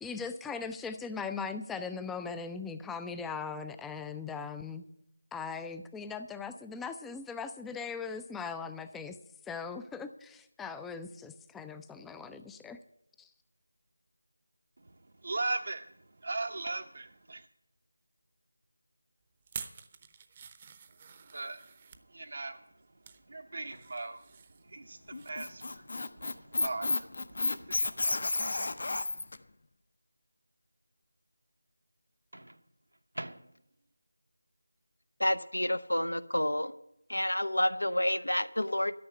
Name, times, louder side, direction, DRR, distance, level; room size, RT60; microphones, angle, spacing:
voice 1, 0.0-4.8 5.3-9.2 9.5-12.8 13.2-13.3, left 5 dB, 5° left, 0.4 m, -39 dB
voice 2, 15.2-15.9 16.2-17.5 21.3-21.6 22.1-22.6 23.3-24.2 24.7-25.9 26.2-28.3, right 3 dB, 55° right, 0.7 m, -38 dB
sound 1, 19.4-22.0 22.7-23.2 23.6-25.3 25.6-25.8 26.2-26.3, right 6 dB, 25° right, 0.7 m, -48 dB
Microwave oven, 23.6-24.3 26.3-26.5 32.3-33.9, right 1 dB, 85° right, 1.0 m, -47 dB
Squeak, 25.1-29.4, left 2 dB, 55° left, 0.7 m, -31 dB
voice 3, 35.2-36.7 37.1-38.9, left 1 dB, 85° left, 0.8 m, -29 dB
12.5 x 6.3 x 9.8 m
figure-of-eight pair, 165°, 0 cm